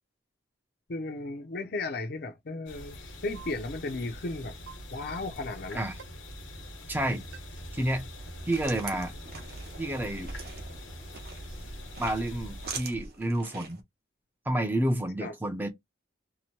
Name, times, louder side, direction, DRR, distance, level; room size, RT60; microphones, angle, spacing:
voice 1, 0.9-3.0 3.2-4.6 4.9-5.8 15.2-15.3, left 2 dB, 55° left, 0.6 m, -35 dB
sound 1, 2.7-12.8, equal, 85° left, 1.2 m, -43 dB
sound 2, 3.3-3.5 4.7-4.8 6.0-6.1 7.3-7.4, right 8 dB, 85° right, 0.9 m, -46 dB
voice 2, 6.9-7.2 7.7-8.1 8.5-9.1 9.8-10.3 12.0-13.8 14.5-15.7, right 1 dB, 10° right, 0.5 m, -29 dB
sound 3, 8.1-13.8, right 5 dB, 55° right, 0.8 m, -44 dB
2.8 x 2.1 x 2.9 m
head